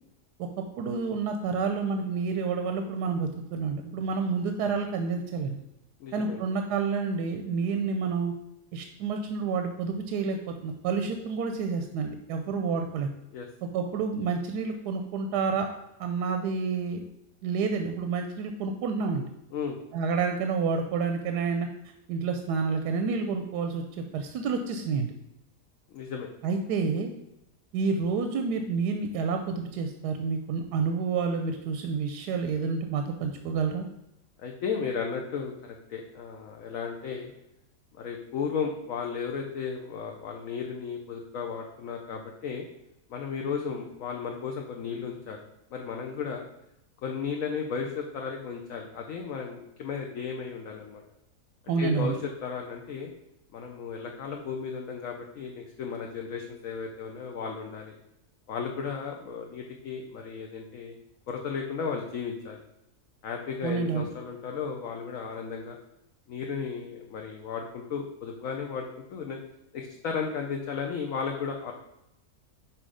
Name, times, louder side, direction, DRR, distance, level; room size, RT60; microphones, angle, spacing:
voice 1, 0.8-5.6 6.1-8.3 8.7-13.1 13.7-15.7 16.0-17.0 17.4-19.3 19.9-21.7 22.1-25.1 26.4-27.1 27.7-33.9 51.7-52.2 63.6-64.1, right 5 dB, 85° right, 5 dB, 1.2 m, -29 dB
voice 2, 6.0-6.4 13.3-13.5 19.5-19.8 25.9-26.3 34.4-37.3 37.9-42.6 43.1-45.4 45.7-46.5 47.0-51.0 51.8-52.2 52.4-53.1 53.5-58.0 58.5-60.9 61.3-62.6 63.2-65.8 66.3-69.4 69.7-71.7, left 6 dB, 65° left, 2 dB, 1.0 m, -34 dB
6.1 x 4.2 x 4.9 m, 0.88 s
omnidirectional pair, 1.7 m